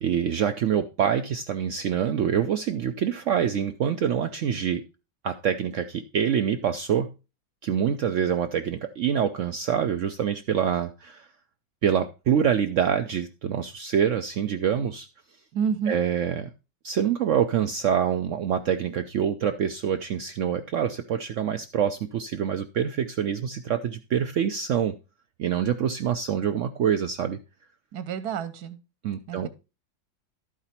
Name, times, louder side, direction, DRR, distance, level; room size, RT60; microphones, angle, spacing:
voice 1, 0.0-4.8 5.2-7.1 7.6-11.3 11.8-15.1 15.9-16.5 16.8-25.0 25.4-27.4 29.0-29.5, right 8 dB, 85° right, 8 dB, 0.6 m, -26 dB
voice 2, 15.5-16.0 27.9-28.8 29.3-29.5, right 7 dB, 60° right, 11 dB, 1.4 m, -29 dB
12.5 x 4.9 x 4.3 m, 0.30 s
omnidirectional pair, 2.0 m